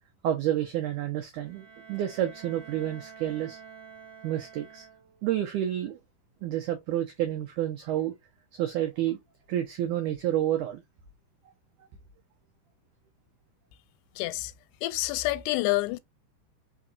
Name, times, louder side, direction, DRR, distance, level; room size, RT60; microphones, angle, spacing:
voice 1, 0.2-3.6 4.2-4.8 5.2-6.0 6.4-8.1 8.5-9.2 9.5-10.8, right 12 dB, 90° right, 1.7 m, -29 dB
Bowed string instrument, 1.4-5.4, right 5 dB, 45° right, 2.3 m, -49 dB
voice 2, 14.2-14.5 14.8-16.0, left 19 dB, 90° left, 2.6 m, -28 dB
5.2 x 4.0 x 2.4 m
omnidirectional pair, 4.5 m